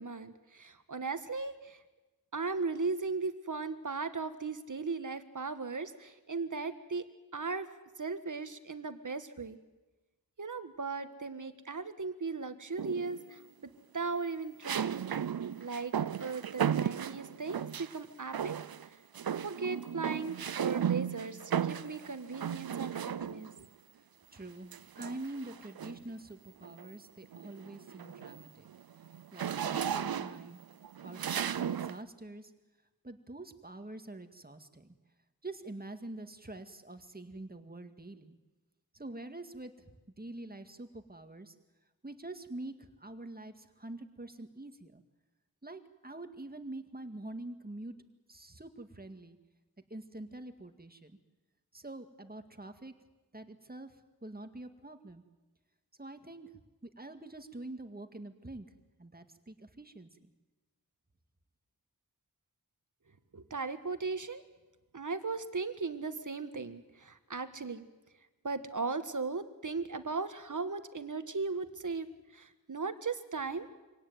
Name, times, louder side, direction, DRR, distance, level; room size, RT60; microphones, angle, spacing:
voice 1, 0.0-1.8 2.3-7.0 7.3-7.7 8.0-9.6 10.4-13.4 13.9-15.0 15.6-15.9 16.2-18.6 19.4-23.7 63.3-64.4 64.9-67.8 68.4-72.1 72.3-73.7, right 4 dB, 55° right, 10 dB, 1.7 m, -37 dB
sound 1, 12.8-13.3 14.6-18.0 18.3-18.9 19.1-23.6 24.7-26.1 26.6-26.9 27.2-32.0, right 8 dB, 75° right, 0.7 m, -35 dB
voice 2, 24.3-28.7 29.3-30.6 31.0-32.5 33.0-35.0 35.4-38.4 38.9-39.9 40.2-41.5 42.0-45.0 45.6-47.9 48.3-49.4 49.9-51.2 51.7-52.9 53.3-54.0 54.2-55.2 56.0-56.5 56.8-58.7 59.0-60.3, right 2 dB, 25° right, 7 dB, 2.1 m, -46 dB
25.0 x 18.0 x 9.4 m, 1.1 s
wide cardioid pair, 50°, 37 cm